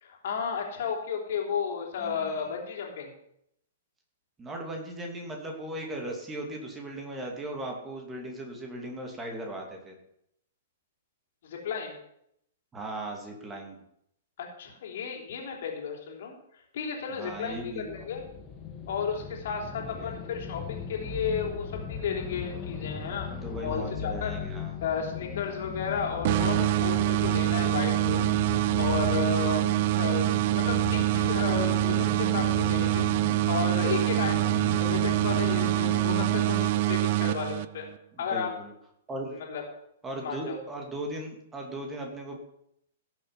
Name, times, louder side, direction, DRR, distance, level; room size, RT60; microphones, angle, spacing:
voice 1, 0.0-3.1 11.4-11.9 14.4-18.2 18.9-23.3 23.6-24.3 24.8-28.3 28.8-33.0 33.5-37.9 38.2-38.5 39.3-39.6 40.2-40.6, left 6 dB, 50° left, 0 dB, 3.3 m, -33 dB
voice 2, 2.0-2.4 4.4-9.9 12.7-13.8 17.2-17.9 19.8-20.1 23.3-24.7 25.7-25.8 34.2-34.5 38.1-38.7 39.1-39.4 40.0-42.4, right 1 dB, 15° right, 1 dB, 2.7 m, -38 dB
sound 1, 17.3-36.7, left 7 dB, 25° left, 1.9 m, -38 dB
sound 2, 26.2-38.0, right 18 dB, 45° right, 0.4 m, -25 dB
17.0 x 7.6 x 5.8 m, 0.75 s
figure-of-eight pair, 110°, 0 cm